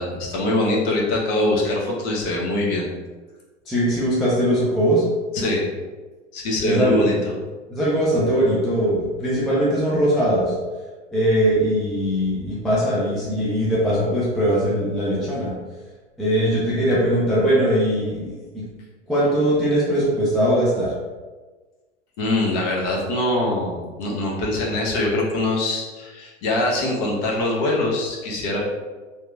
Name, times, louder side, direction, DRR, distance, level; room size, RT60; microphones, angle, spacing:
voice 1, 0.0-2.9 5.3-5.7 6.3-7.1 22.2-28.6, left 2 dB, 45° left, -3 dB, 0.8 m, -23 dB
voice 2, 3.7-5.0 6.6-7.0 7.7-10.5 11.1-15.5 16.2-18.3 19.1-20.9, equal, ahead, -8 dB, 0.3 m, -20 dB
2.9 x 2.0 x 2.3 m, 1.3 s
hypercardioid pair, 95°, 36 cm